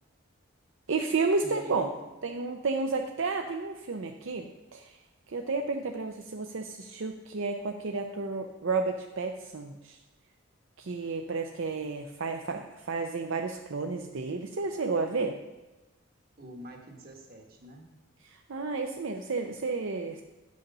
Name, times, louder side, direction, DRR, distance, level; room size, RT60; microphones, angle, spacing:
voice 1, 0.9-1.9 2.2-5.0 5.3-10.0 10.8-15.3 18.3-20.2, right 4 dB, 70° right, 4 dB, 0.6 m, -32 dB
voice 2, 1.4-2.1 16.4-17.9, right 1 dB, 45° right, 2 dB, 1.4 m, -46 dB
9.9 x 6.3 x 5.5 m, 1.1 s
head